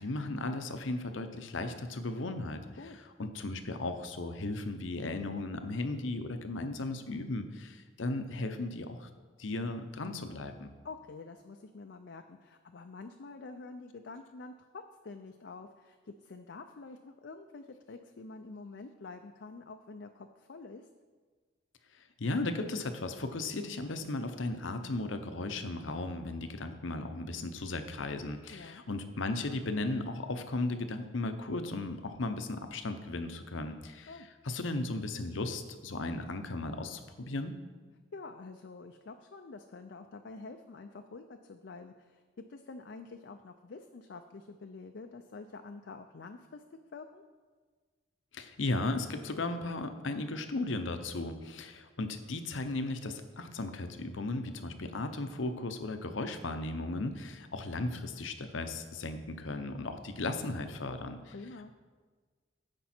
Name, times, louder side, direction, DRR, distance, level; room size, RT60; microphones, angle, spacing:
voice 1, 0.0-2.6 3.2-9.1 9.4-10.7 21.9-34.1 34.4-37.5 48.3-61.3, left 2 dB, 80° left, 8 dB, 0.8 m, -36 dB
voice 2, 10.8-20.9 28.5-28.8 34.1-34.3 38.1-42.2 42.5-46.6 46.9-47.2 61.3-61.7, left 3 dB, 60° left, 6 dB, 0.5 m, -47 dB
15.0 x 5.3 x 4.4 m, 1.5 s
head